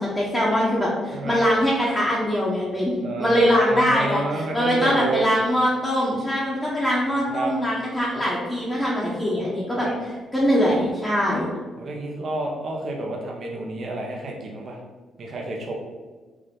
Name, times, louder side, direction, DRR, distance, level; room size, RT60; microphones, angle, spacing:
voice 1, 0.0-9.9 10.3-11.5, equal, 10° left, -7 dB, 1.0 m, -22 dB
voice 2, 1.1-1.5 3.0-5.3 7.3-7.5 9.8-10.0 11.8-14.8 15.2-15.7, right 2 dB, 50° right, -1 dB, 1.0 m, -29 dB
4.7 x 2.5 x 3.7 m, 1.3 s
cardioid pair, 90°, 0 cm